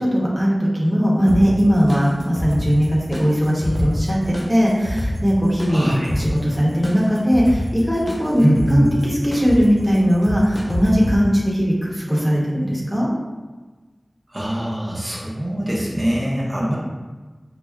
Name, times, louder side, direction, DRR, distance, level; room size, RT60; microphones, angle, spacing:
voice 1, 0.0-8.4 8.7-13.1, equal, 5° right, -5 dB, 1.0 m, -19 dB
sound 1, 1.3-11.2, equal, 55° left, 0.6 m, -28 dB
voice 2, 5.7-6.1 8.4-8.9 14.3-16.8, right 1 dB, 45° right, -6 dB, 0.8 m, -21 dB
5.8 x 2.0 x 2.3 m, 1.3 s
wide cardioid pair, 60°, 0 cm